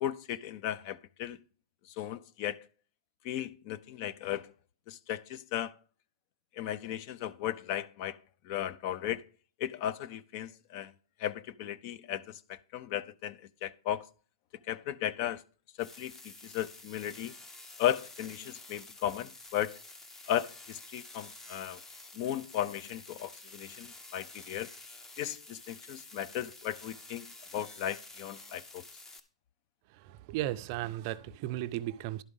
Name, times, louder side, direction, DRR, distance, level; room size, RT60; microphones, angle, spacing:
voice 1, 0.0-1.4 1.9-2.7 3.2-4.5 4.9-5.8 6.5-8.2 8.4-9.2 9.6-10.9 11.2-14.1 14.7-15.4 15.8-17.3 17.8-19.8 20.3-21.8 22.1-24.7 25.2-28.8, left 11 dB, 35° left, 0.5 m, -36 dB
sound 1, 15.8-29.2, left 2 dB, 10° left, 0.8 m, -50 dB
voice 2, 30.0-32.2, right 14 dB, 35° right, 0.5 m, -35 dB
11.5 x 4.9 x 5.4 m
hypercardioid pair, 155°, 3 cm